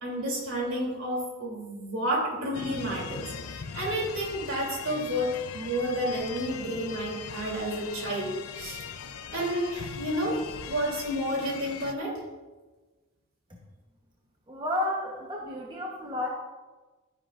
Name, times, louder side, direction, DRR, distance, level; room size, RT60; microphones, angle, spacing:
voice 1, 0.0-8.9 9.3-12.2, equal, 65° right, -2 dB, 3.1 m, -31 dB
sound 1, 2.5-11.9, left 7 dB, 80° left, 0.6 m, -40 dB
voice 2, 14.5-16.3, left 1 dB, 20° right, -2 dB, 1.1 m, -31 dB
12.0 x 10.0 x 2.6 m, 1.2 s
head